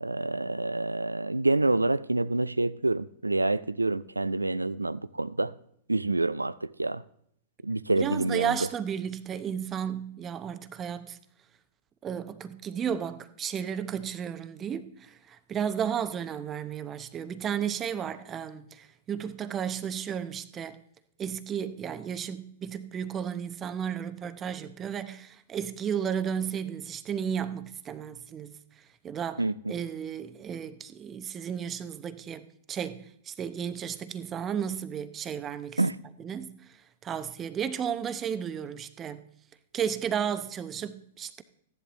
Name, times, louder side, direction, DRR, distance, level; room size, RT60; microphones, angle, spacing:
voice 1, 0.0-5.5 5.9-7.0 7.6-8.6 29.4-29.5 35.8-36.0, right 2 dB, 85° right, 0.4 m, -27 dB
voice 2, 8.0-11.2 12.0-20.8 21.2-28.5 29.0-29.4 29.7-35.8 36.2-36.6 37.0-39.2 39.7-41.4, right 8 dB, 25° right, 0.7 m, -33 dB
15.0 x 10.5 x 3.0 m
figure-of-eight pair, 100°, 0 cm